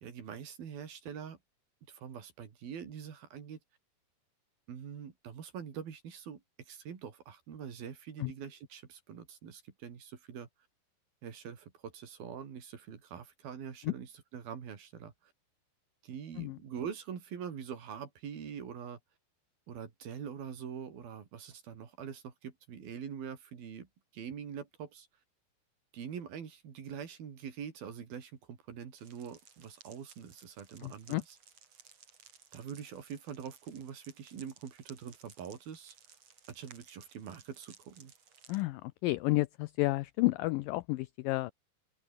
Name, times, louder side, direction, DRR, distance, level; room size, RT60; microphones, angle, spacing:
voice 1, 0.0-1.4 1.9-3.6 4.7-6.4 6.7-10.5 11.2-15.3 16.0-19.0 19.7-23.9 24.1-25.1 25.9-31.4 32.5-36.0 36.5-38.1, right 7 dB, 70° right, 5.0 m, -44 dB
sound 1, 29.0-38.6, right 6 dB, 45° right, 3.7 m, -59 dB
voice 2, 30.8-31.2 38.5-41.5, left 20 dB, 85° left, 1.9 m, -31 dB
open air
omnidirectional pair, 4.5 m